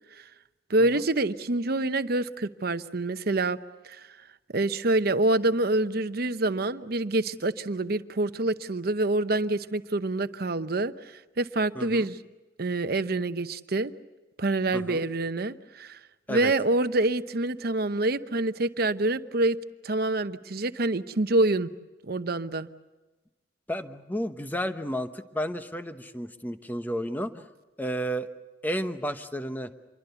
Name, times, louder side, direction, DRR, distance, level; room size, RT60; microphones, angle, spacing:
voice 1, 0.7-3.6 3.8-4.1 4.5-10.9 11.4-12.2 12.6-13.9 14.4-16.0 16.3-19.6 19.8-21.7 22.0-22.7, right 2 dB, 55° right, 11 dB, 0.9 m, -26 dB
voice 2, 11.7-12.1 14.7-15.0 16.3-16.5 23.7-27.5 27.8-28.3 28.6-29.7, equal, 10° left, 8 dB, 1.0 m, -32 dB
27.5 x 23.0 x 7.0 m, 1.1 s
head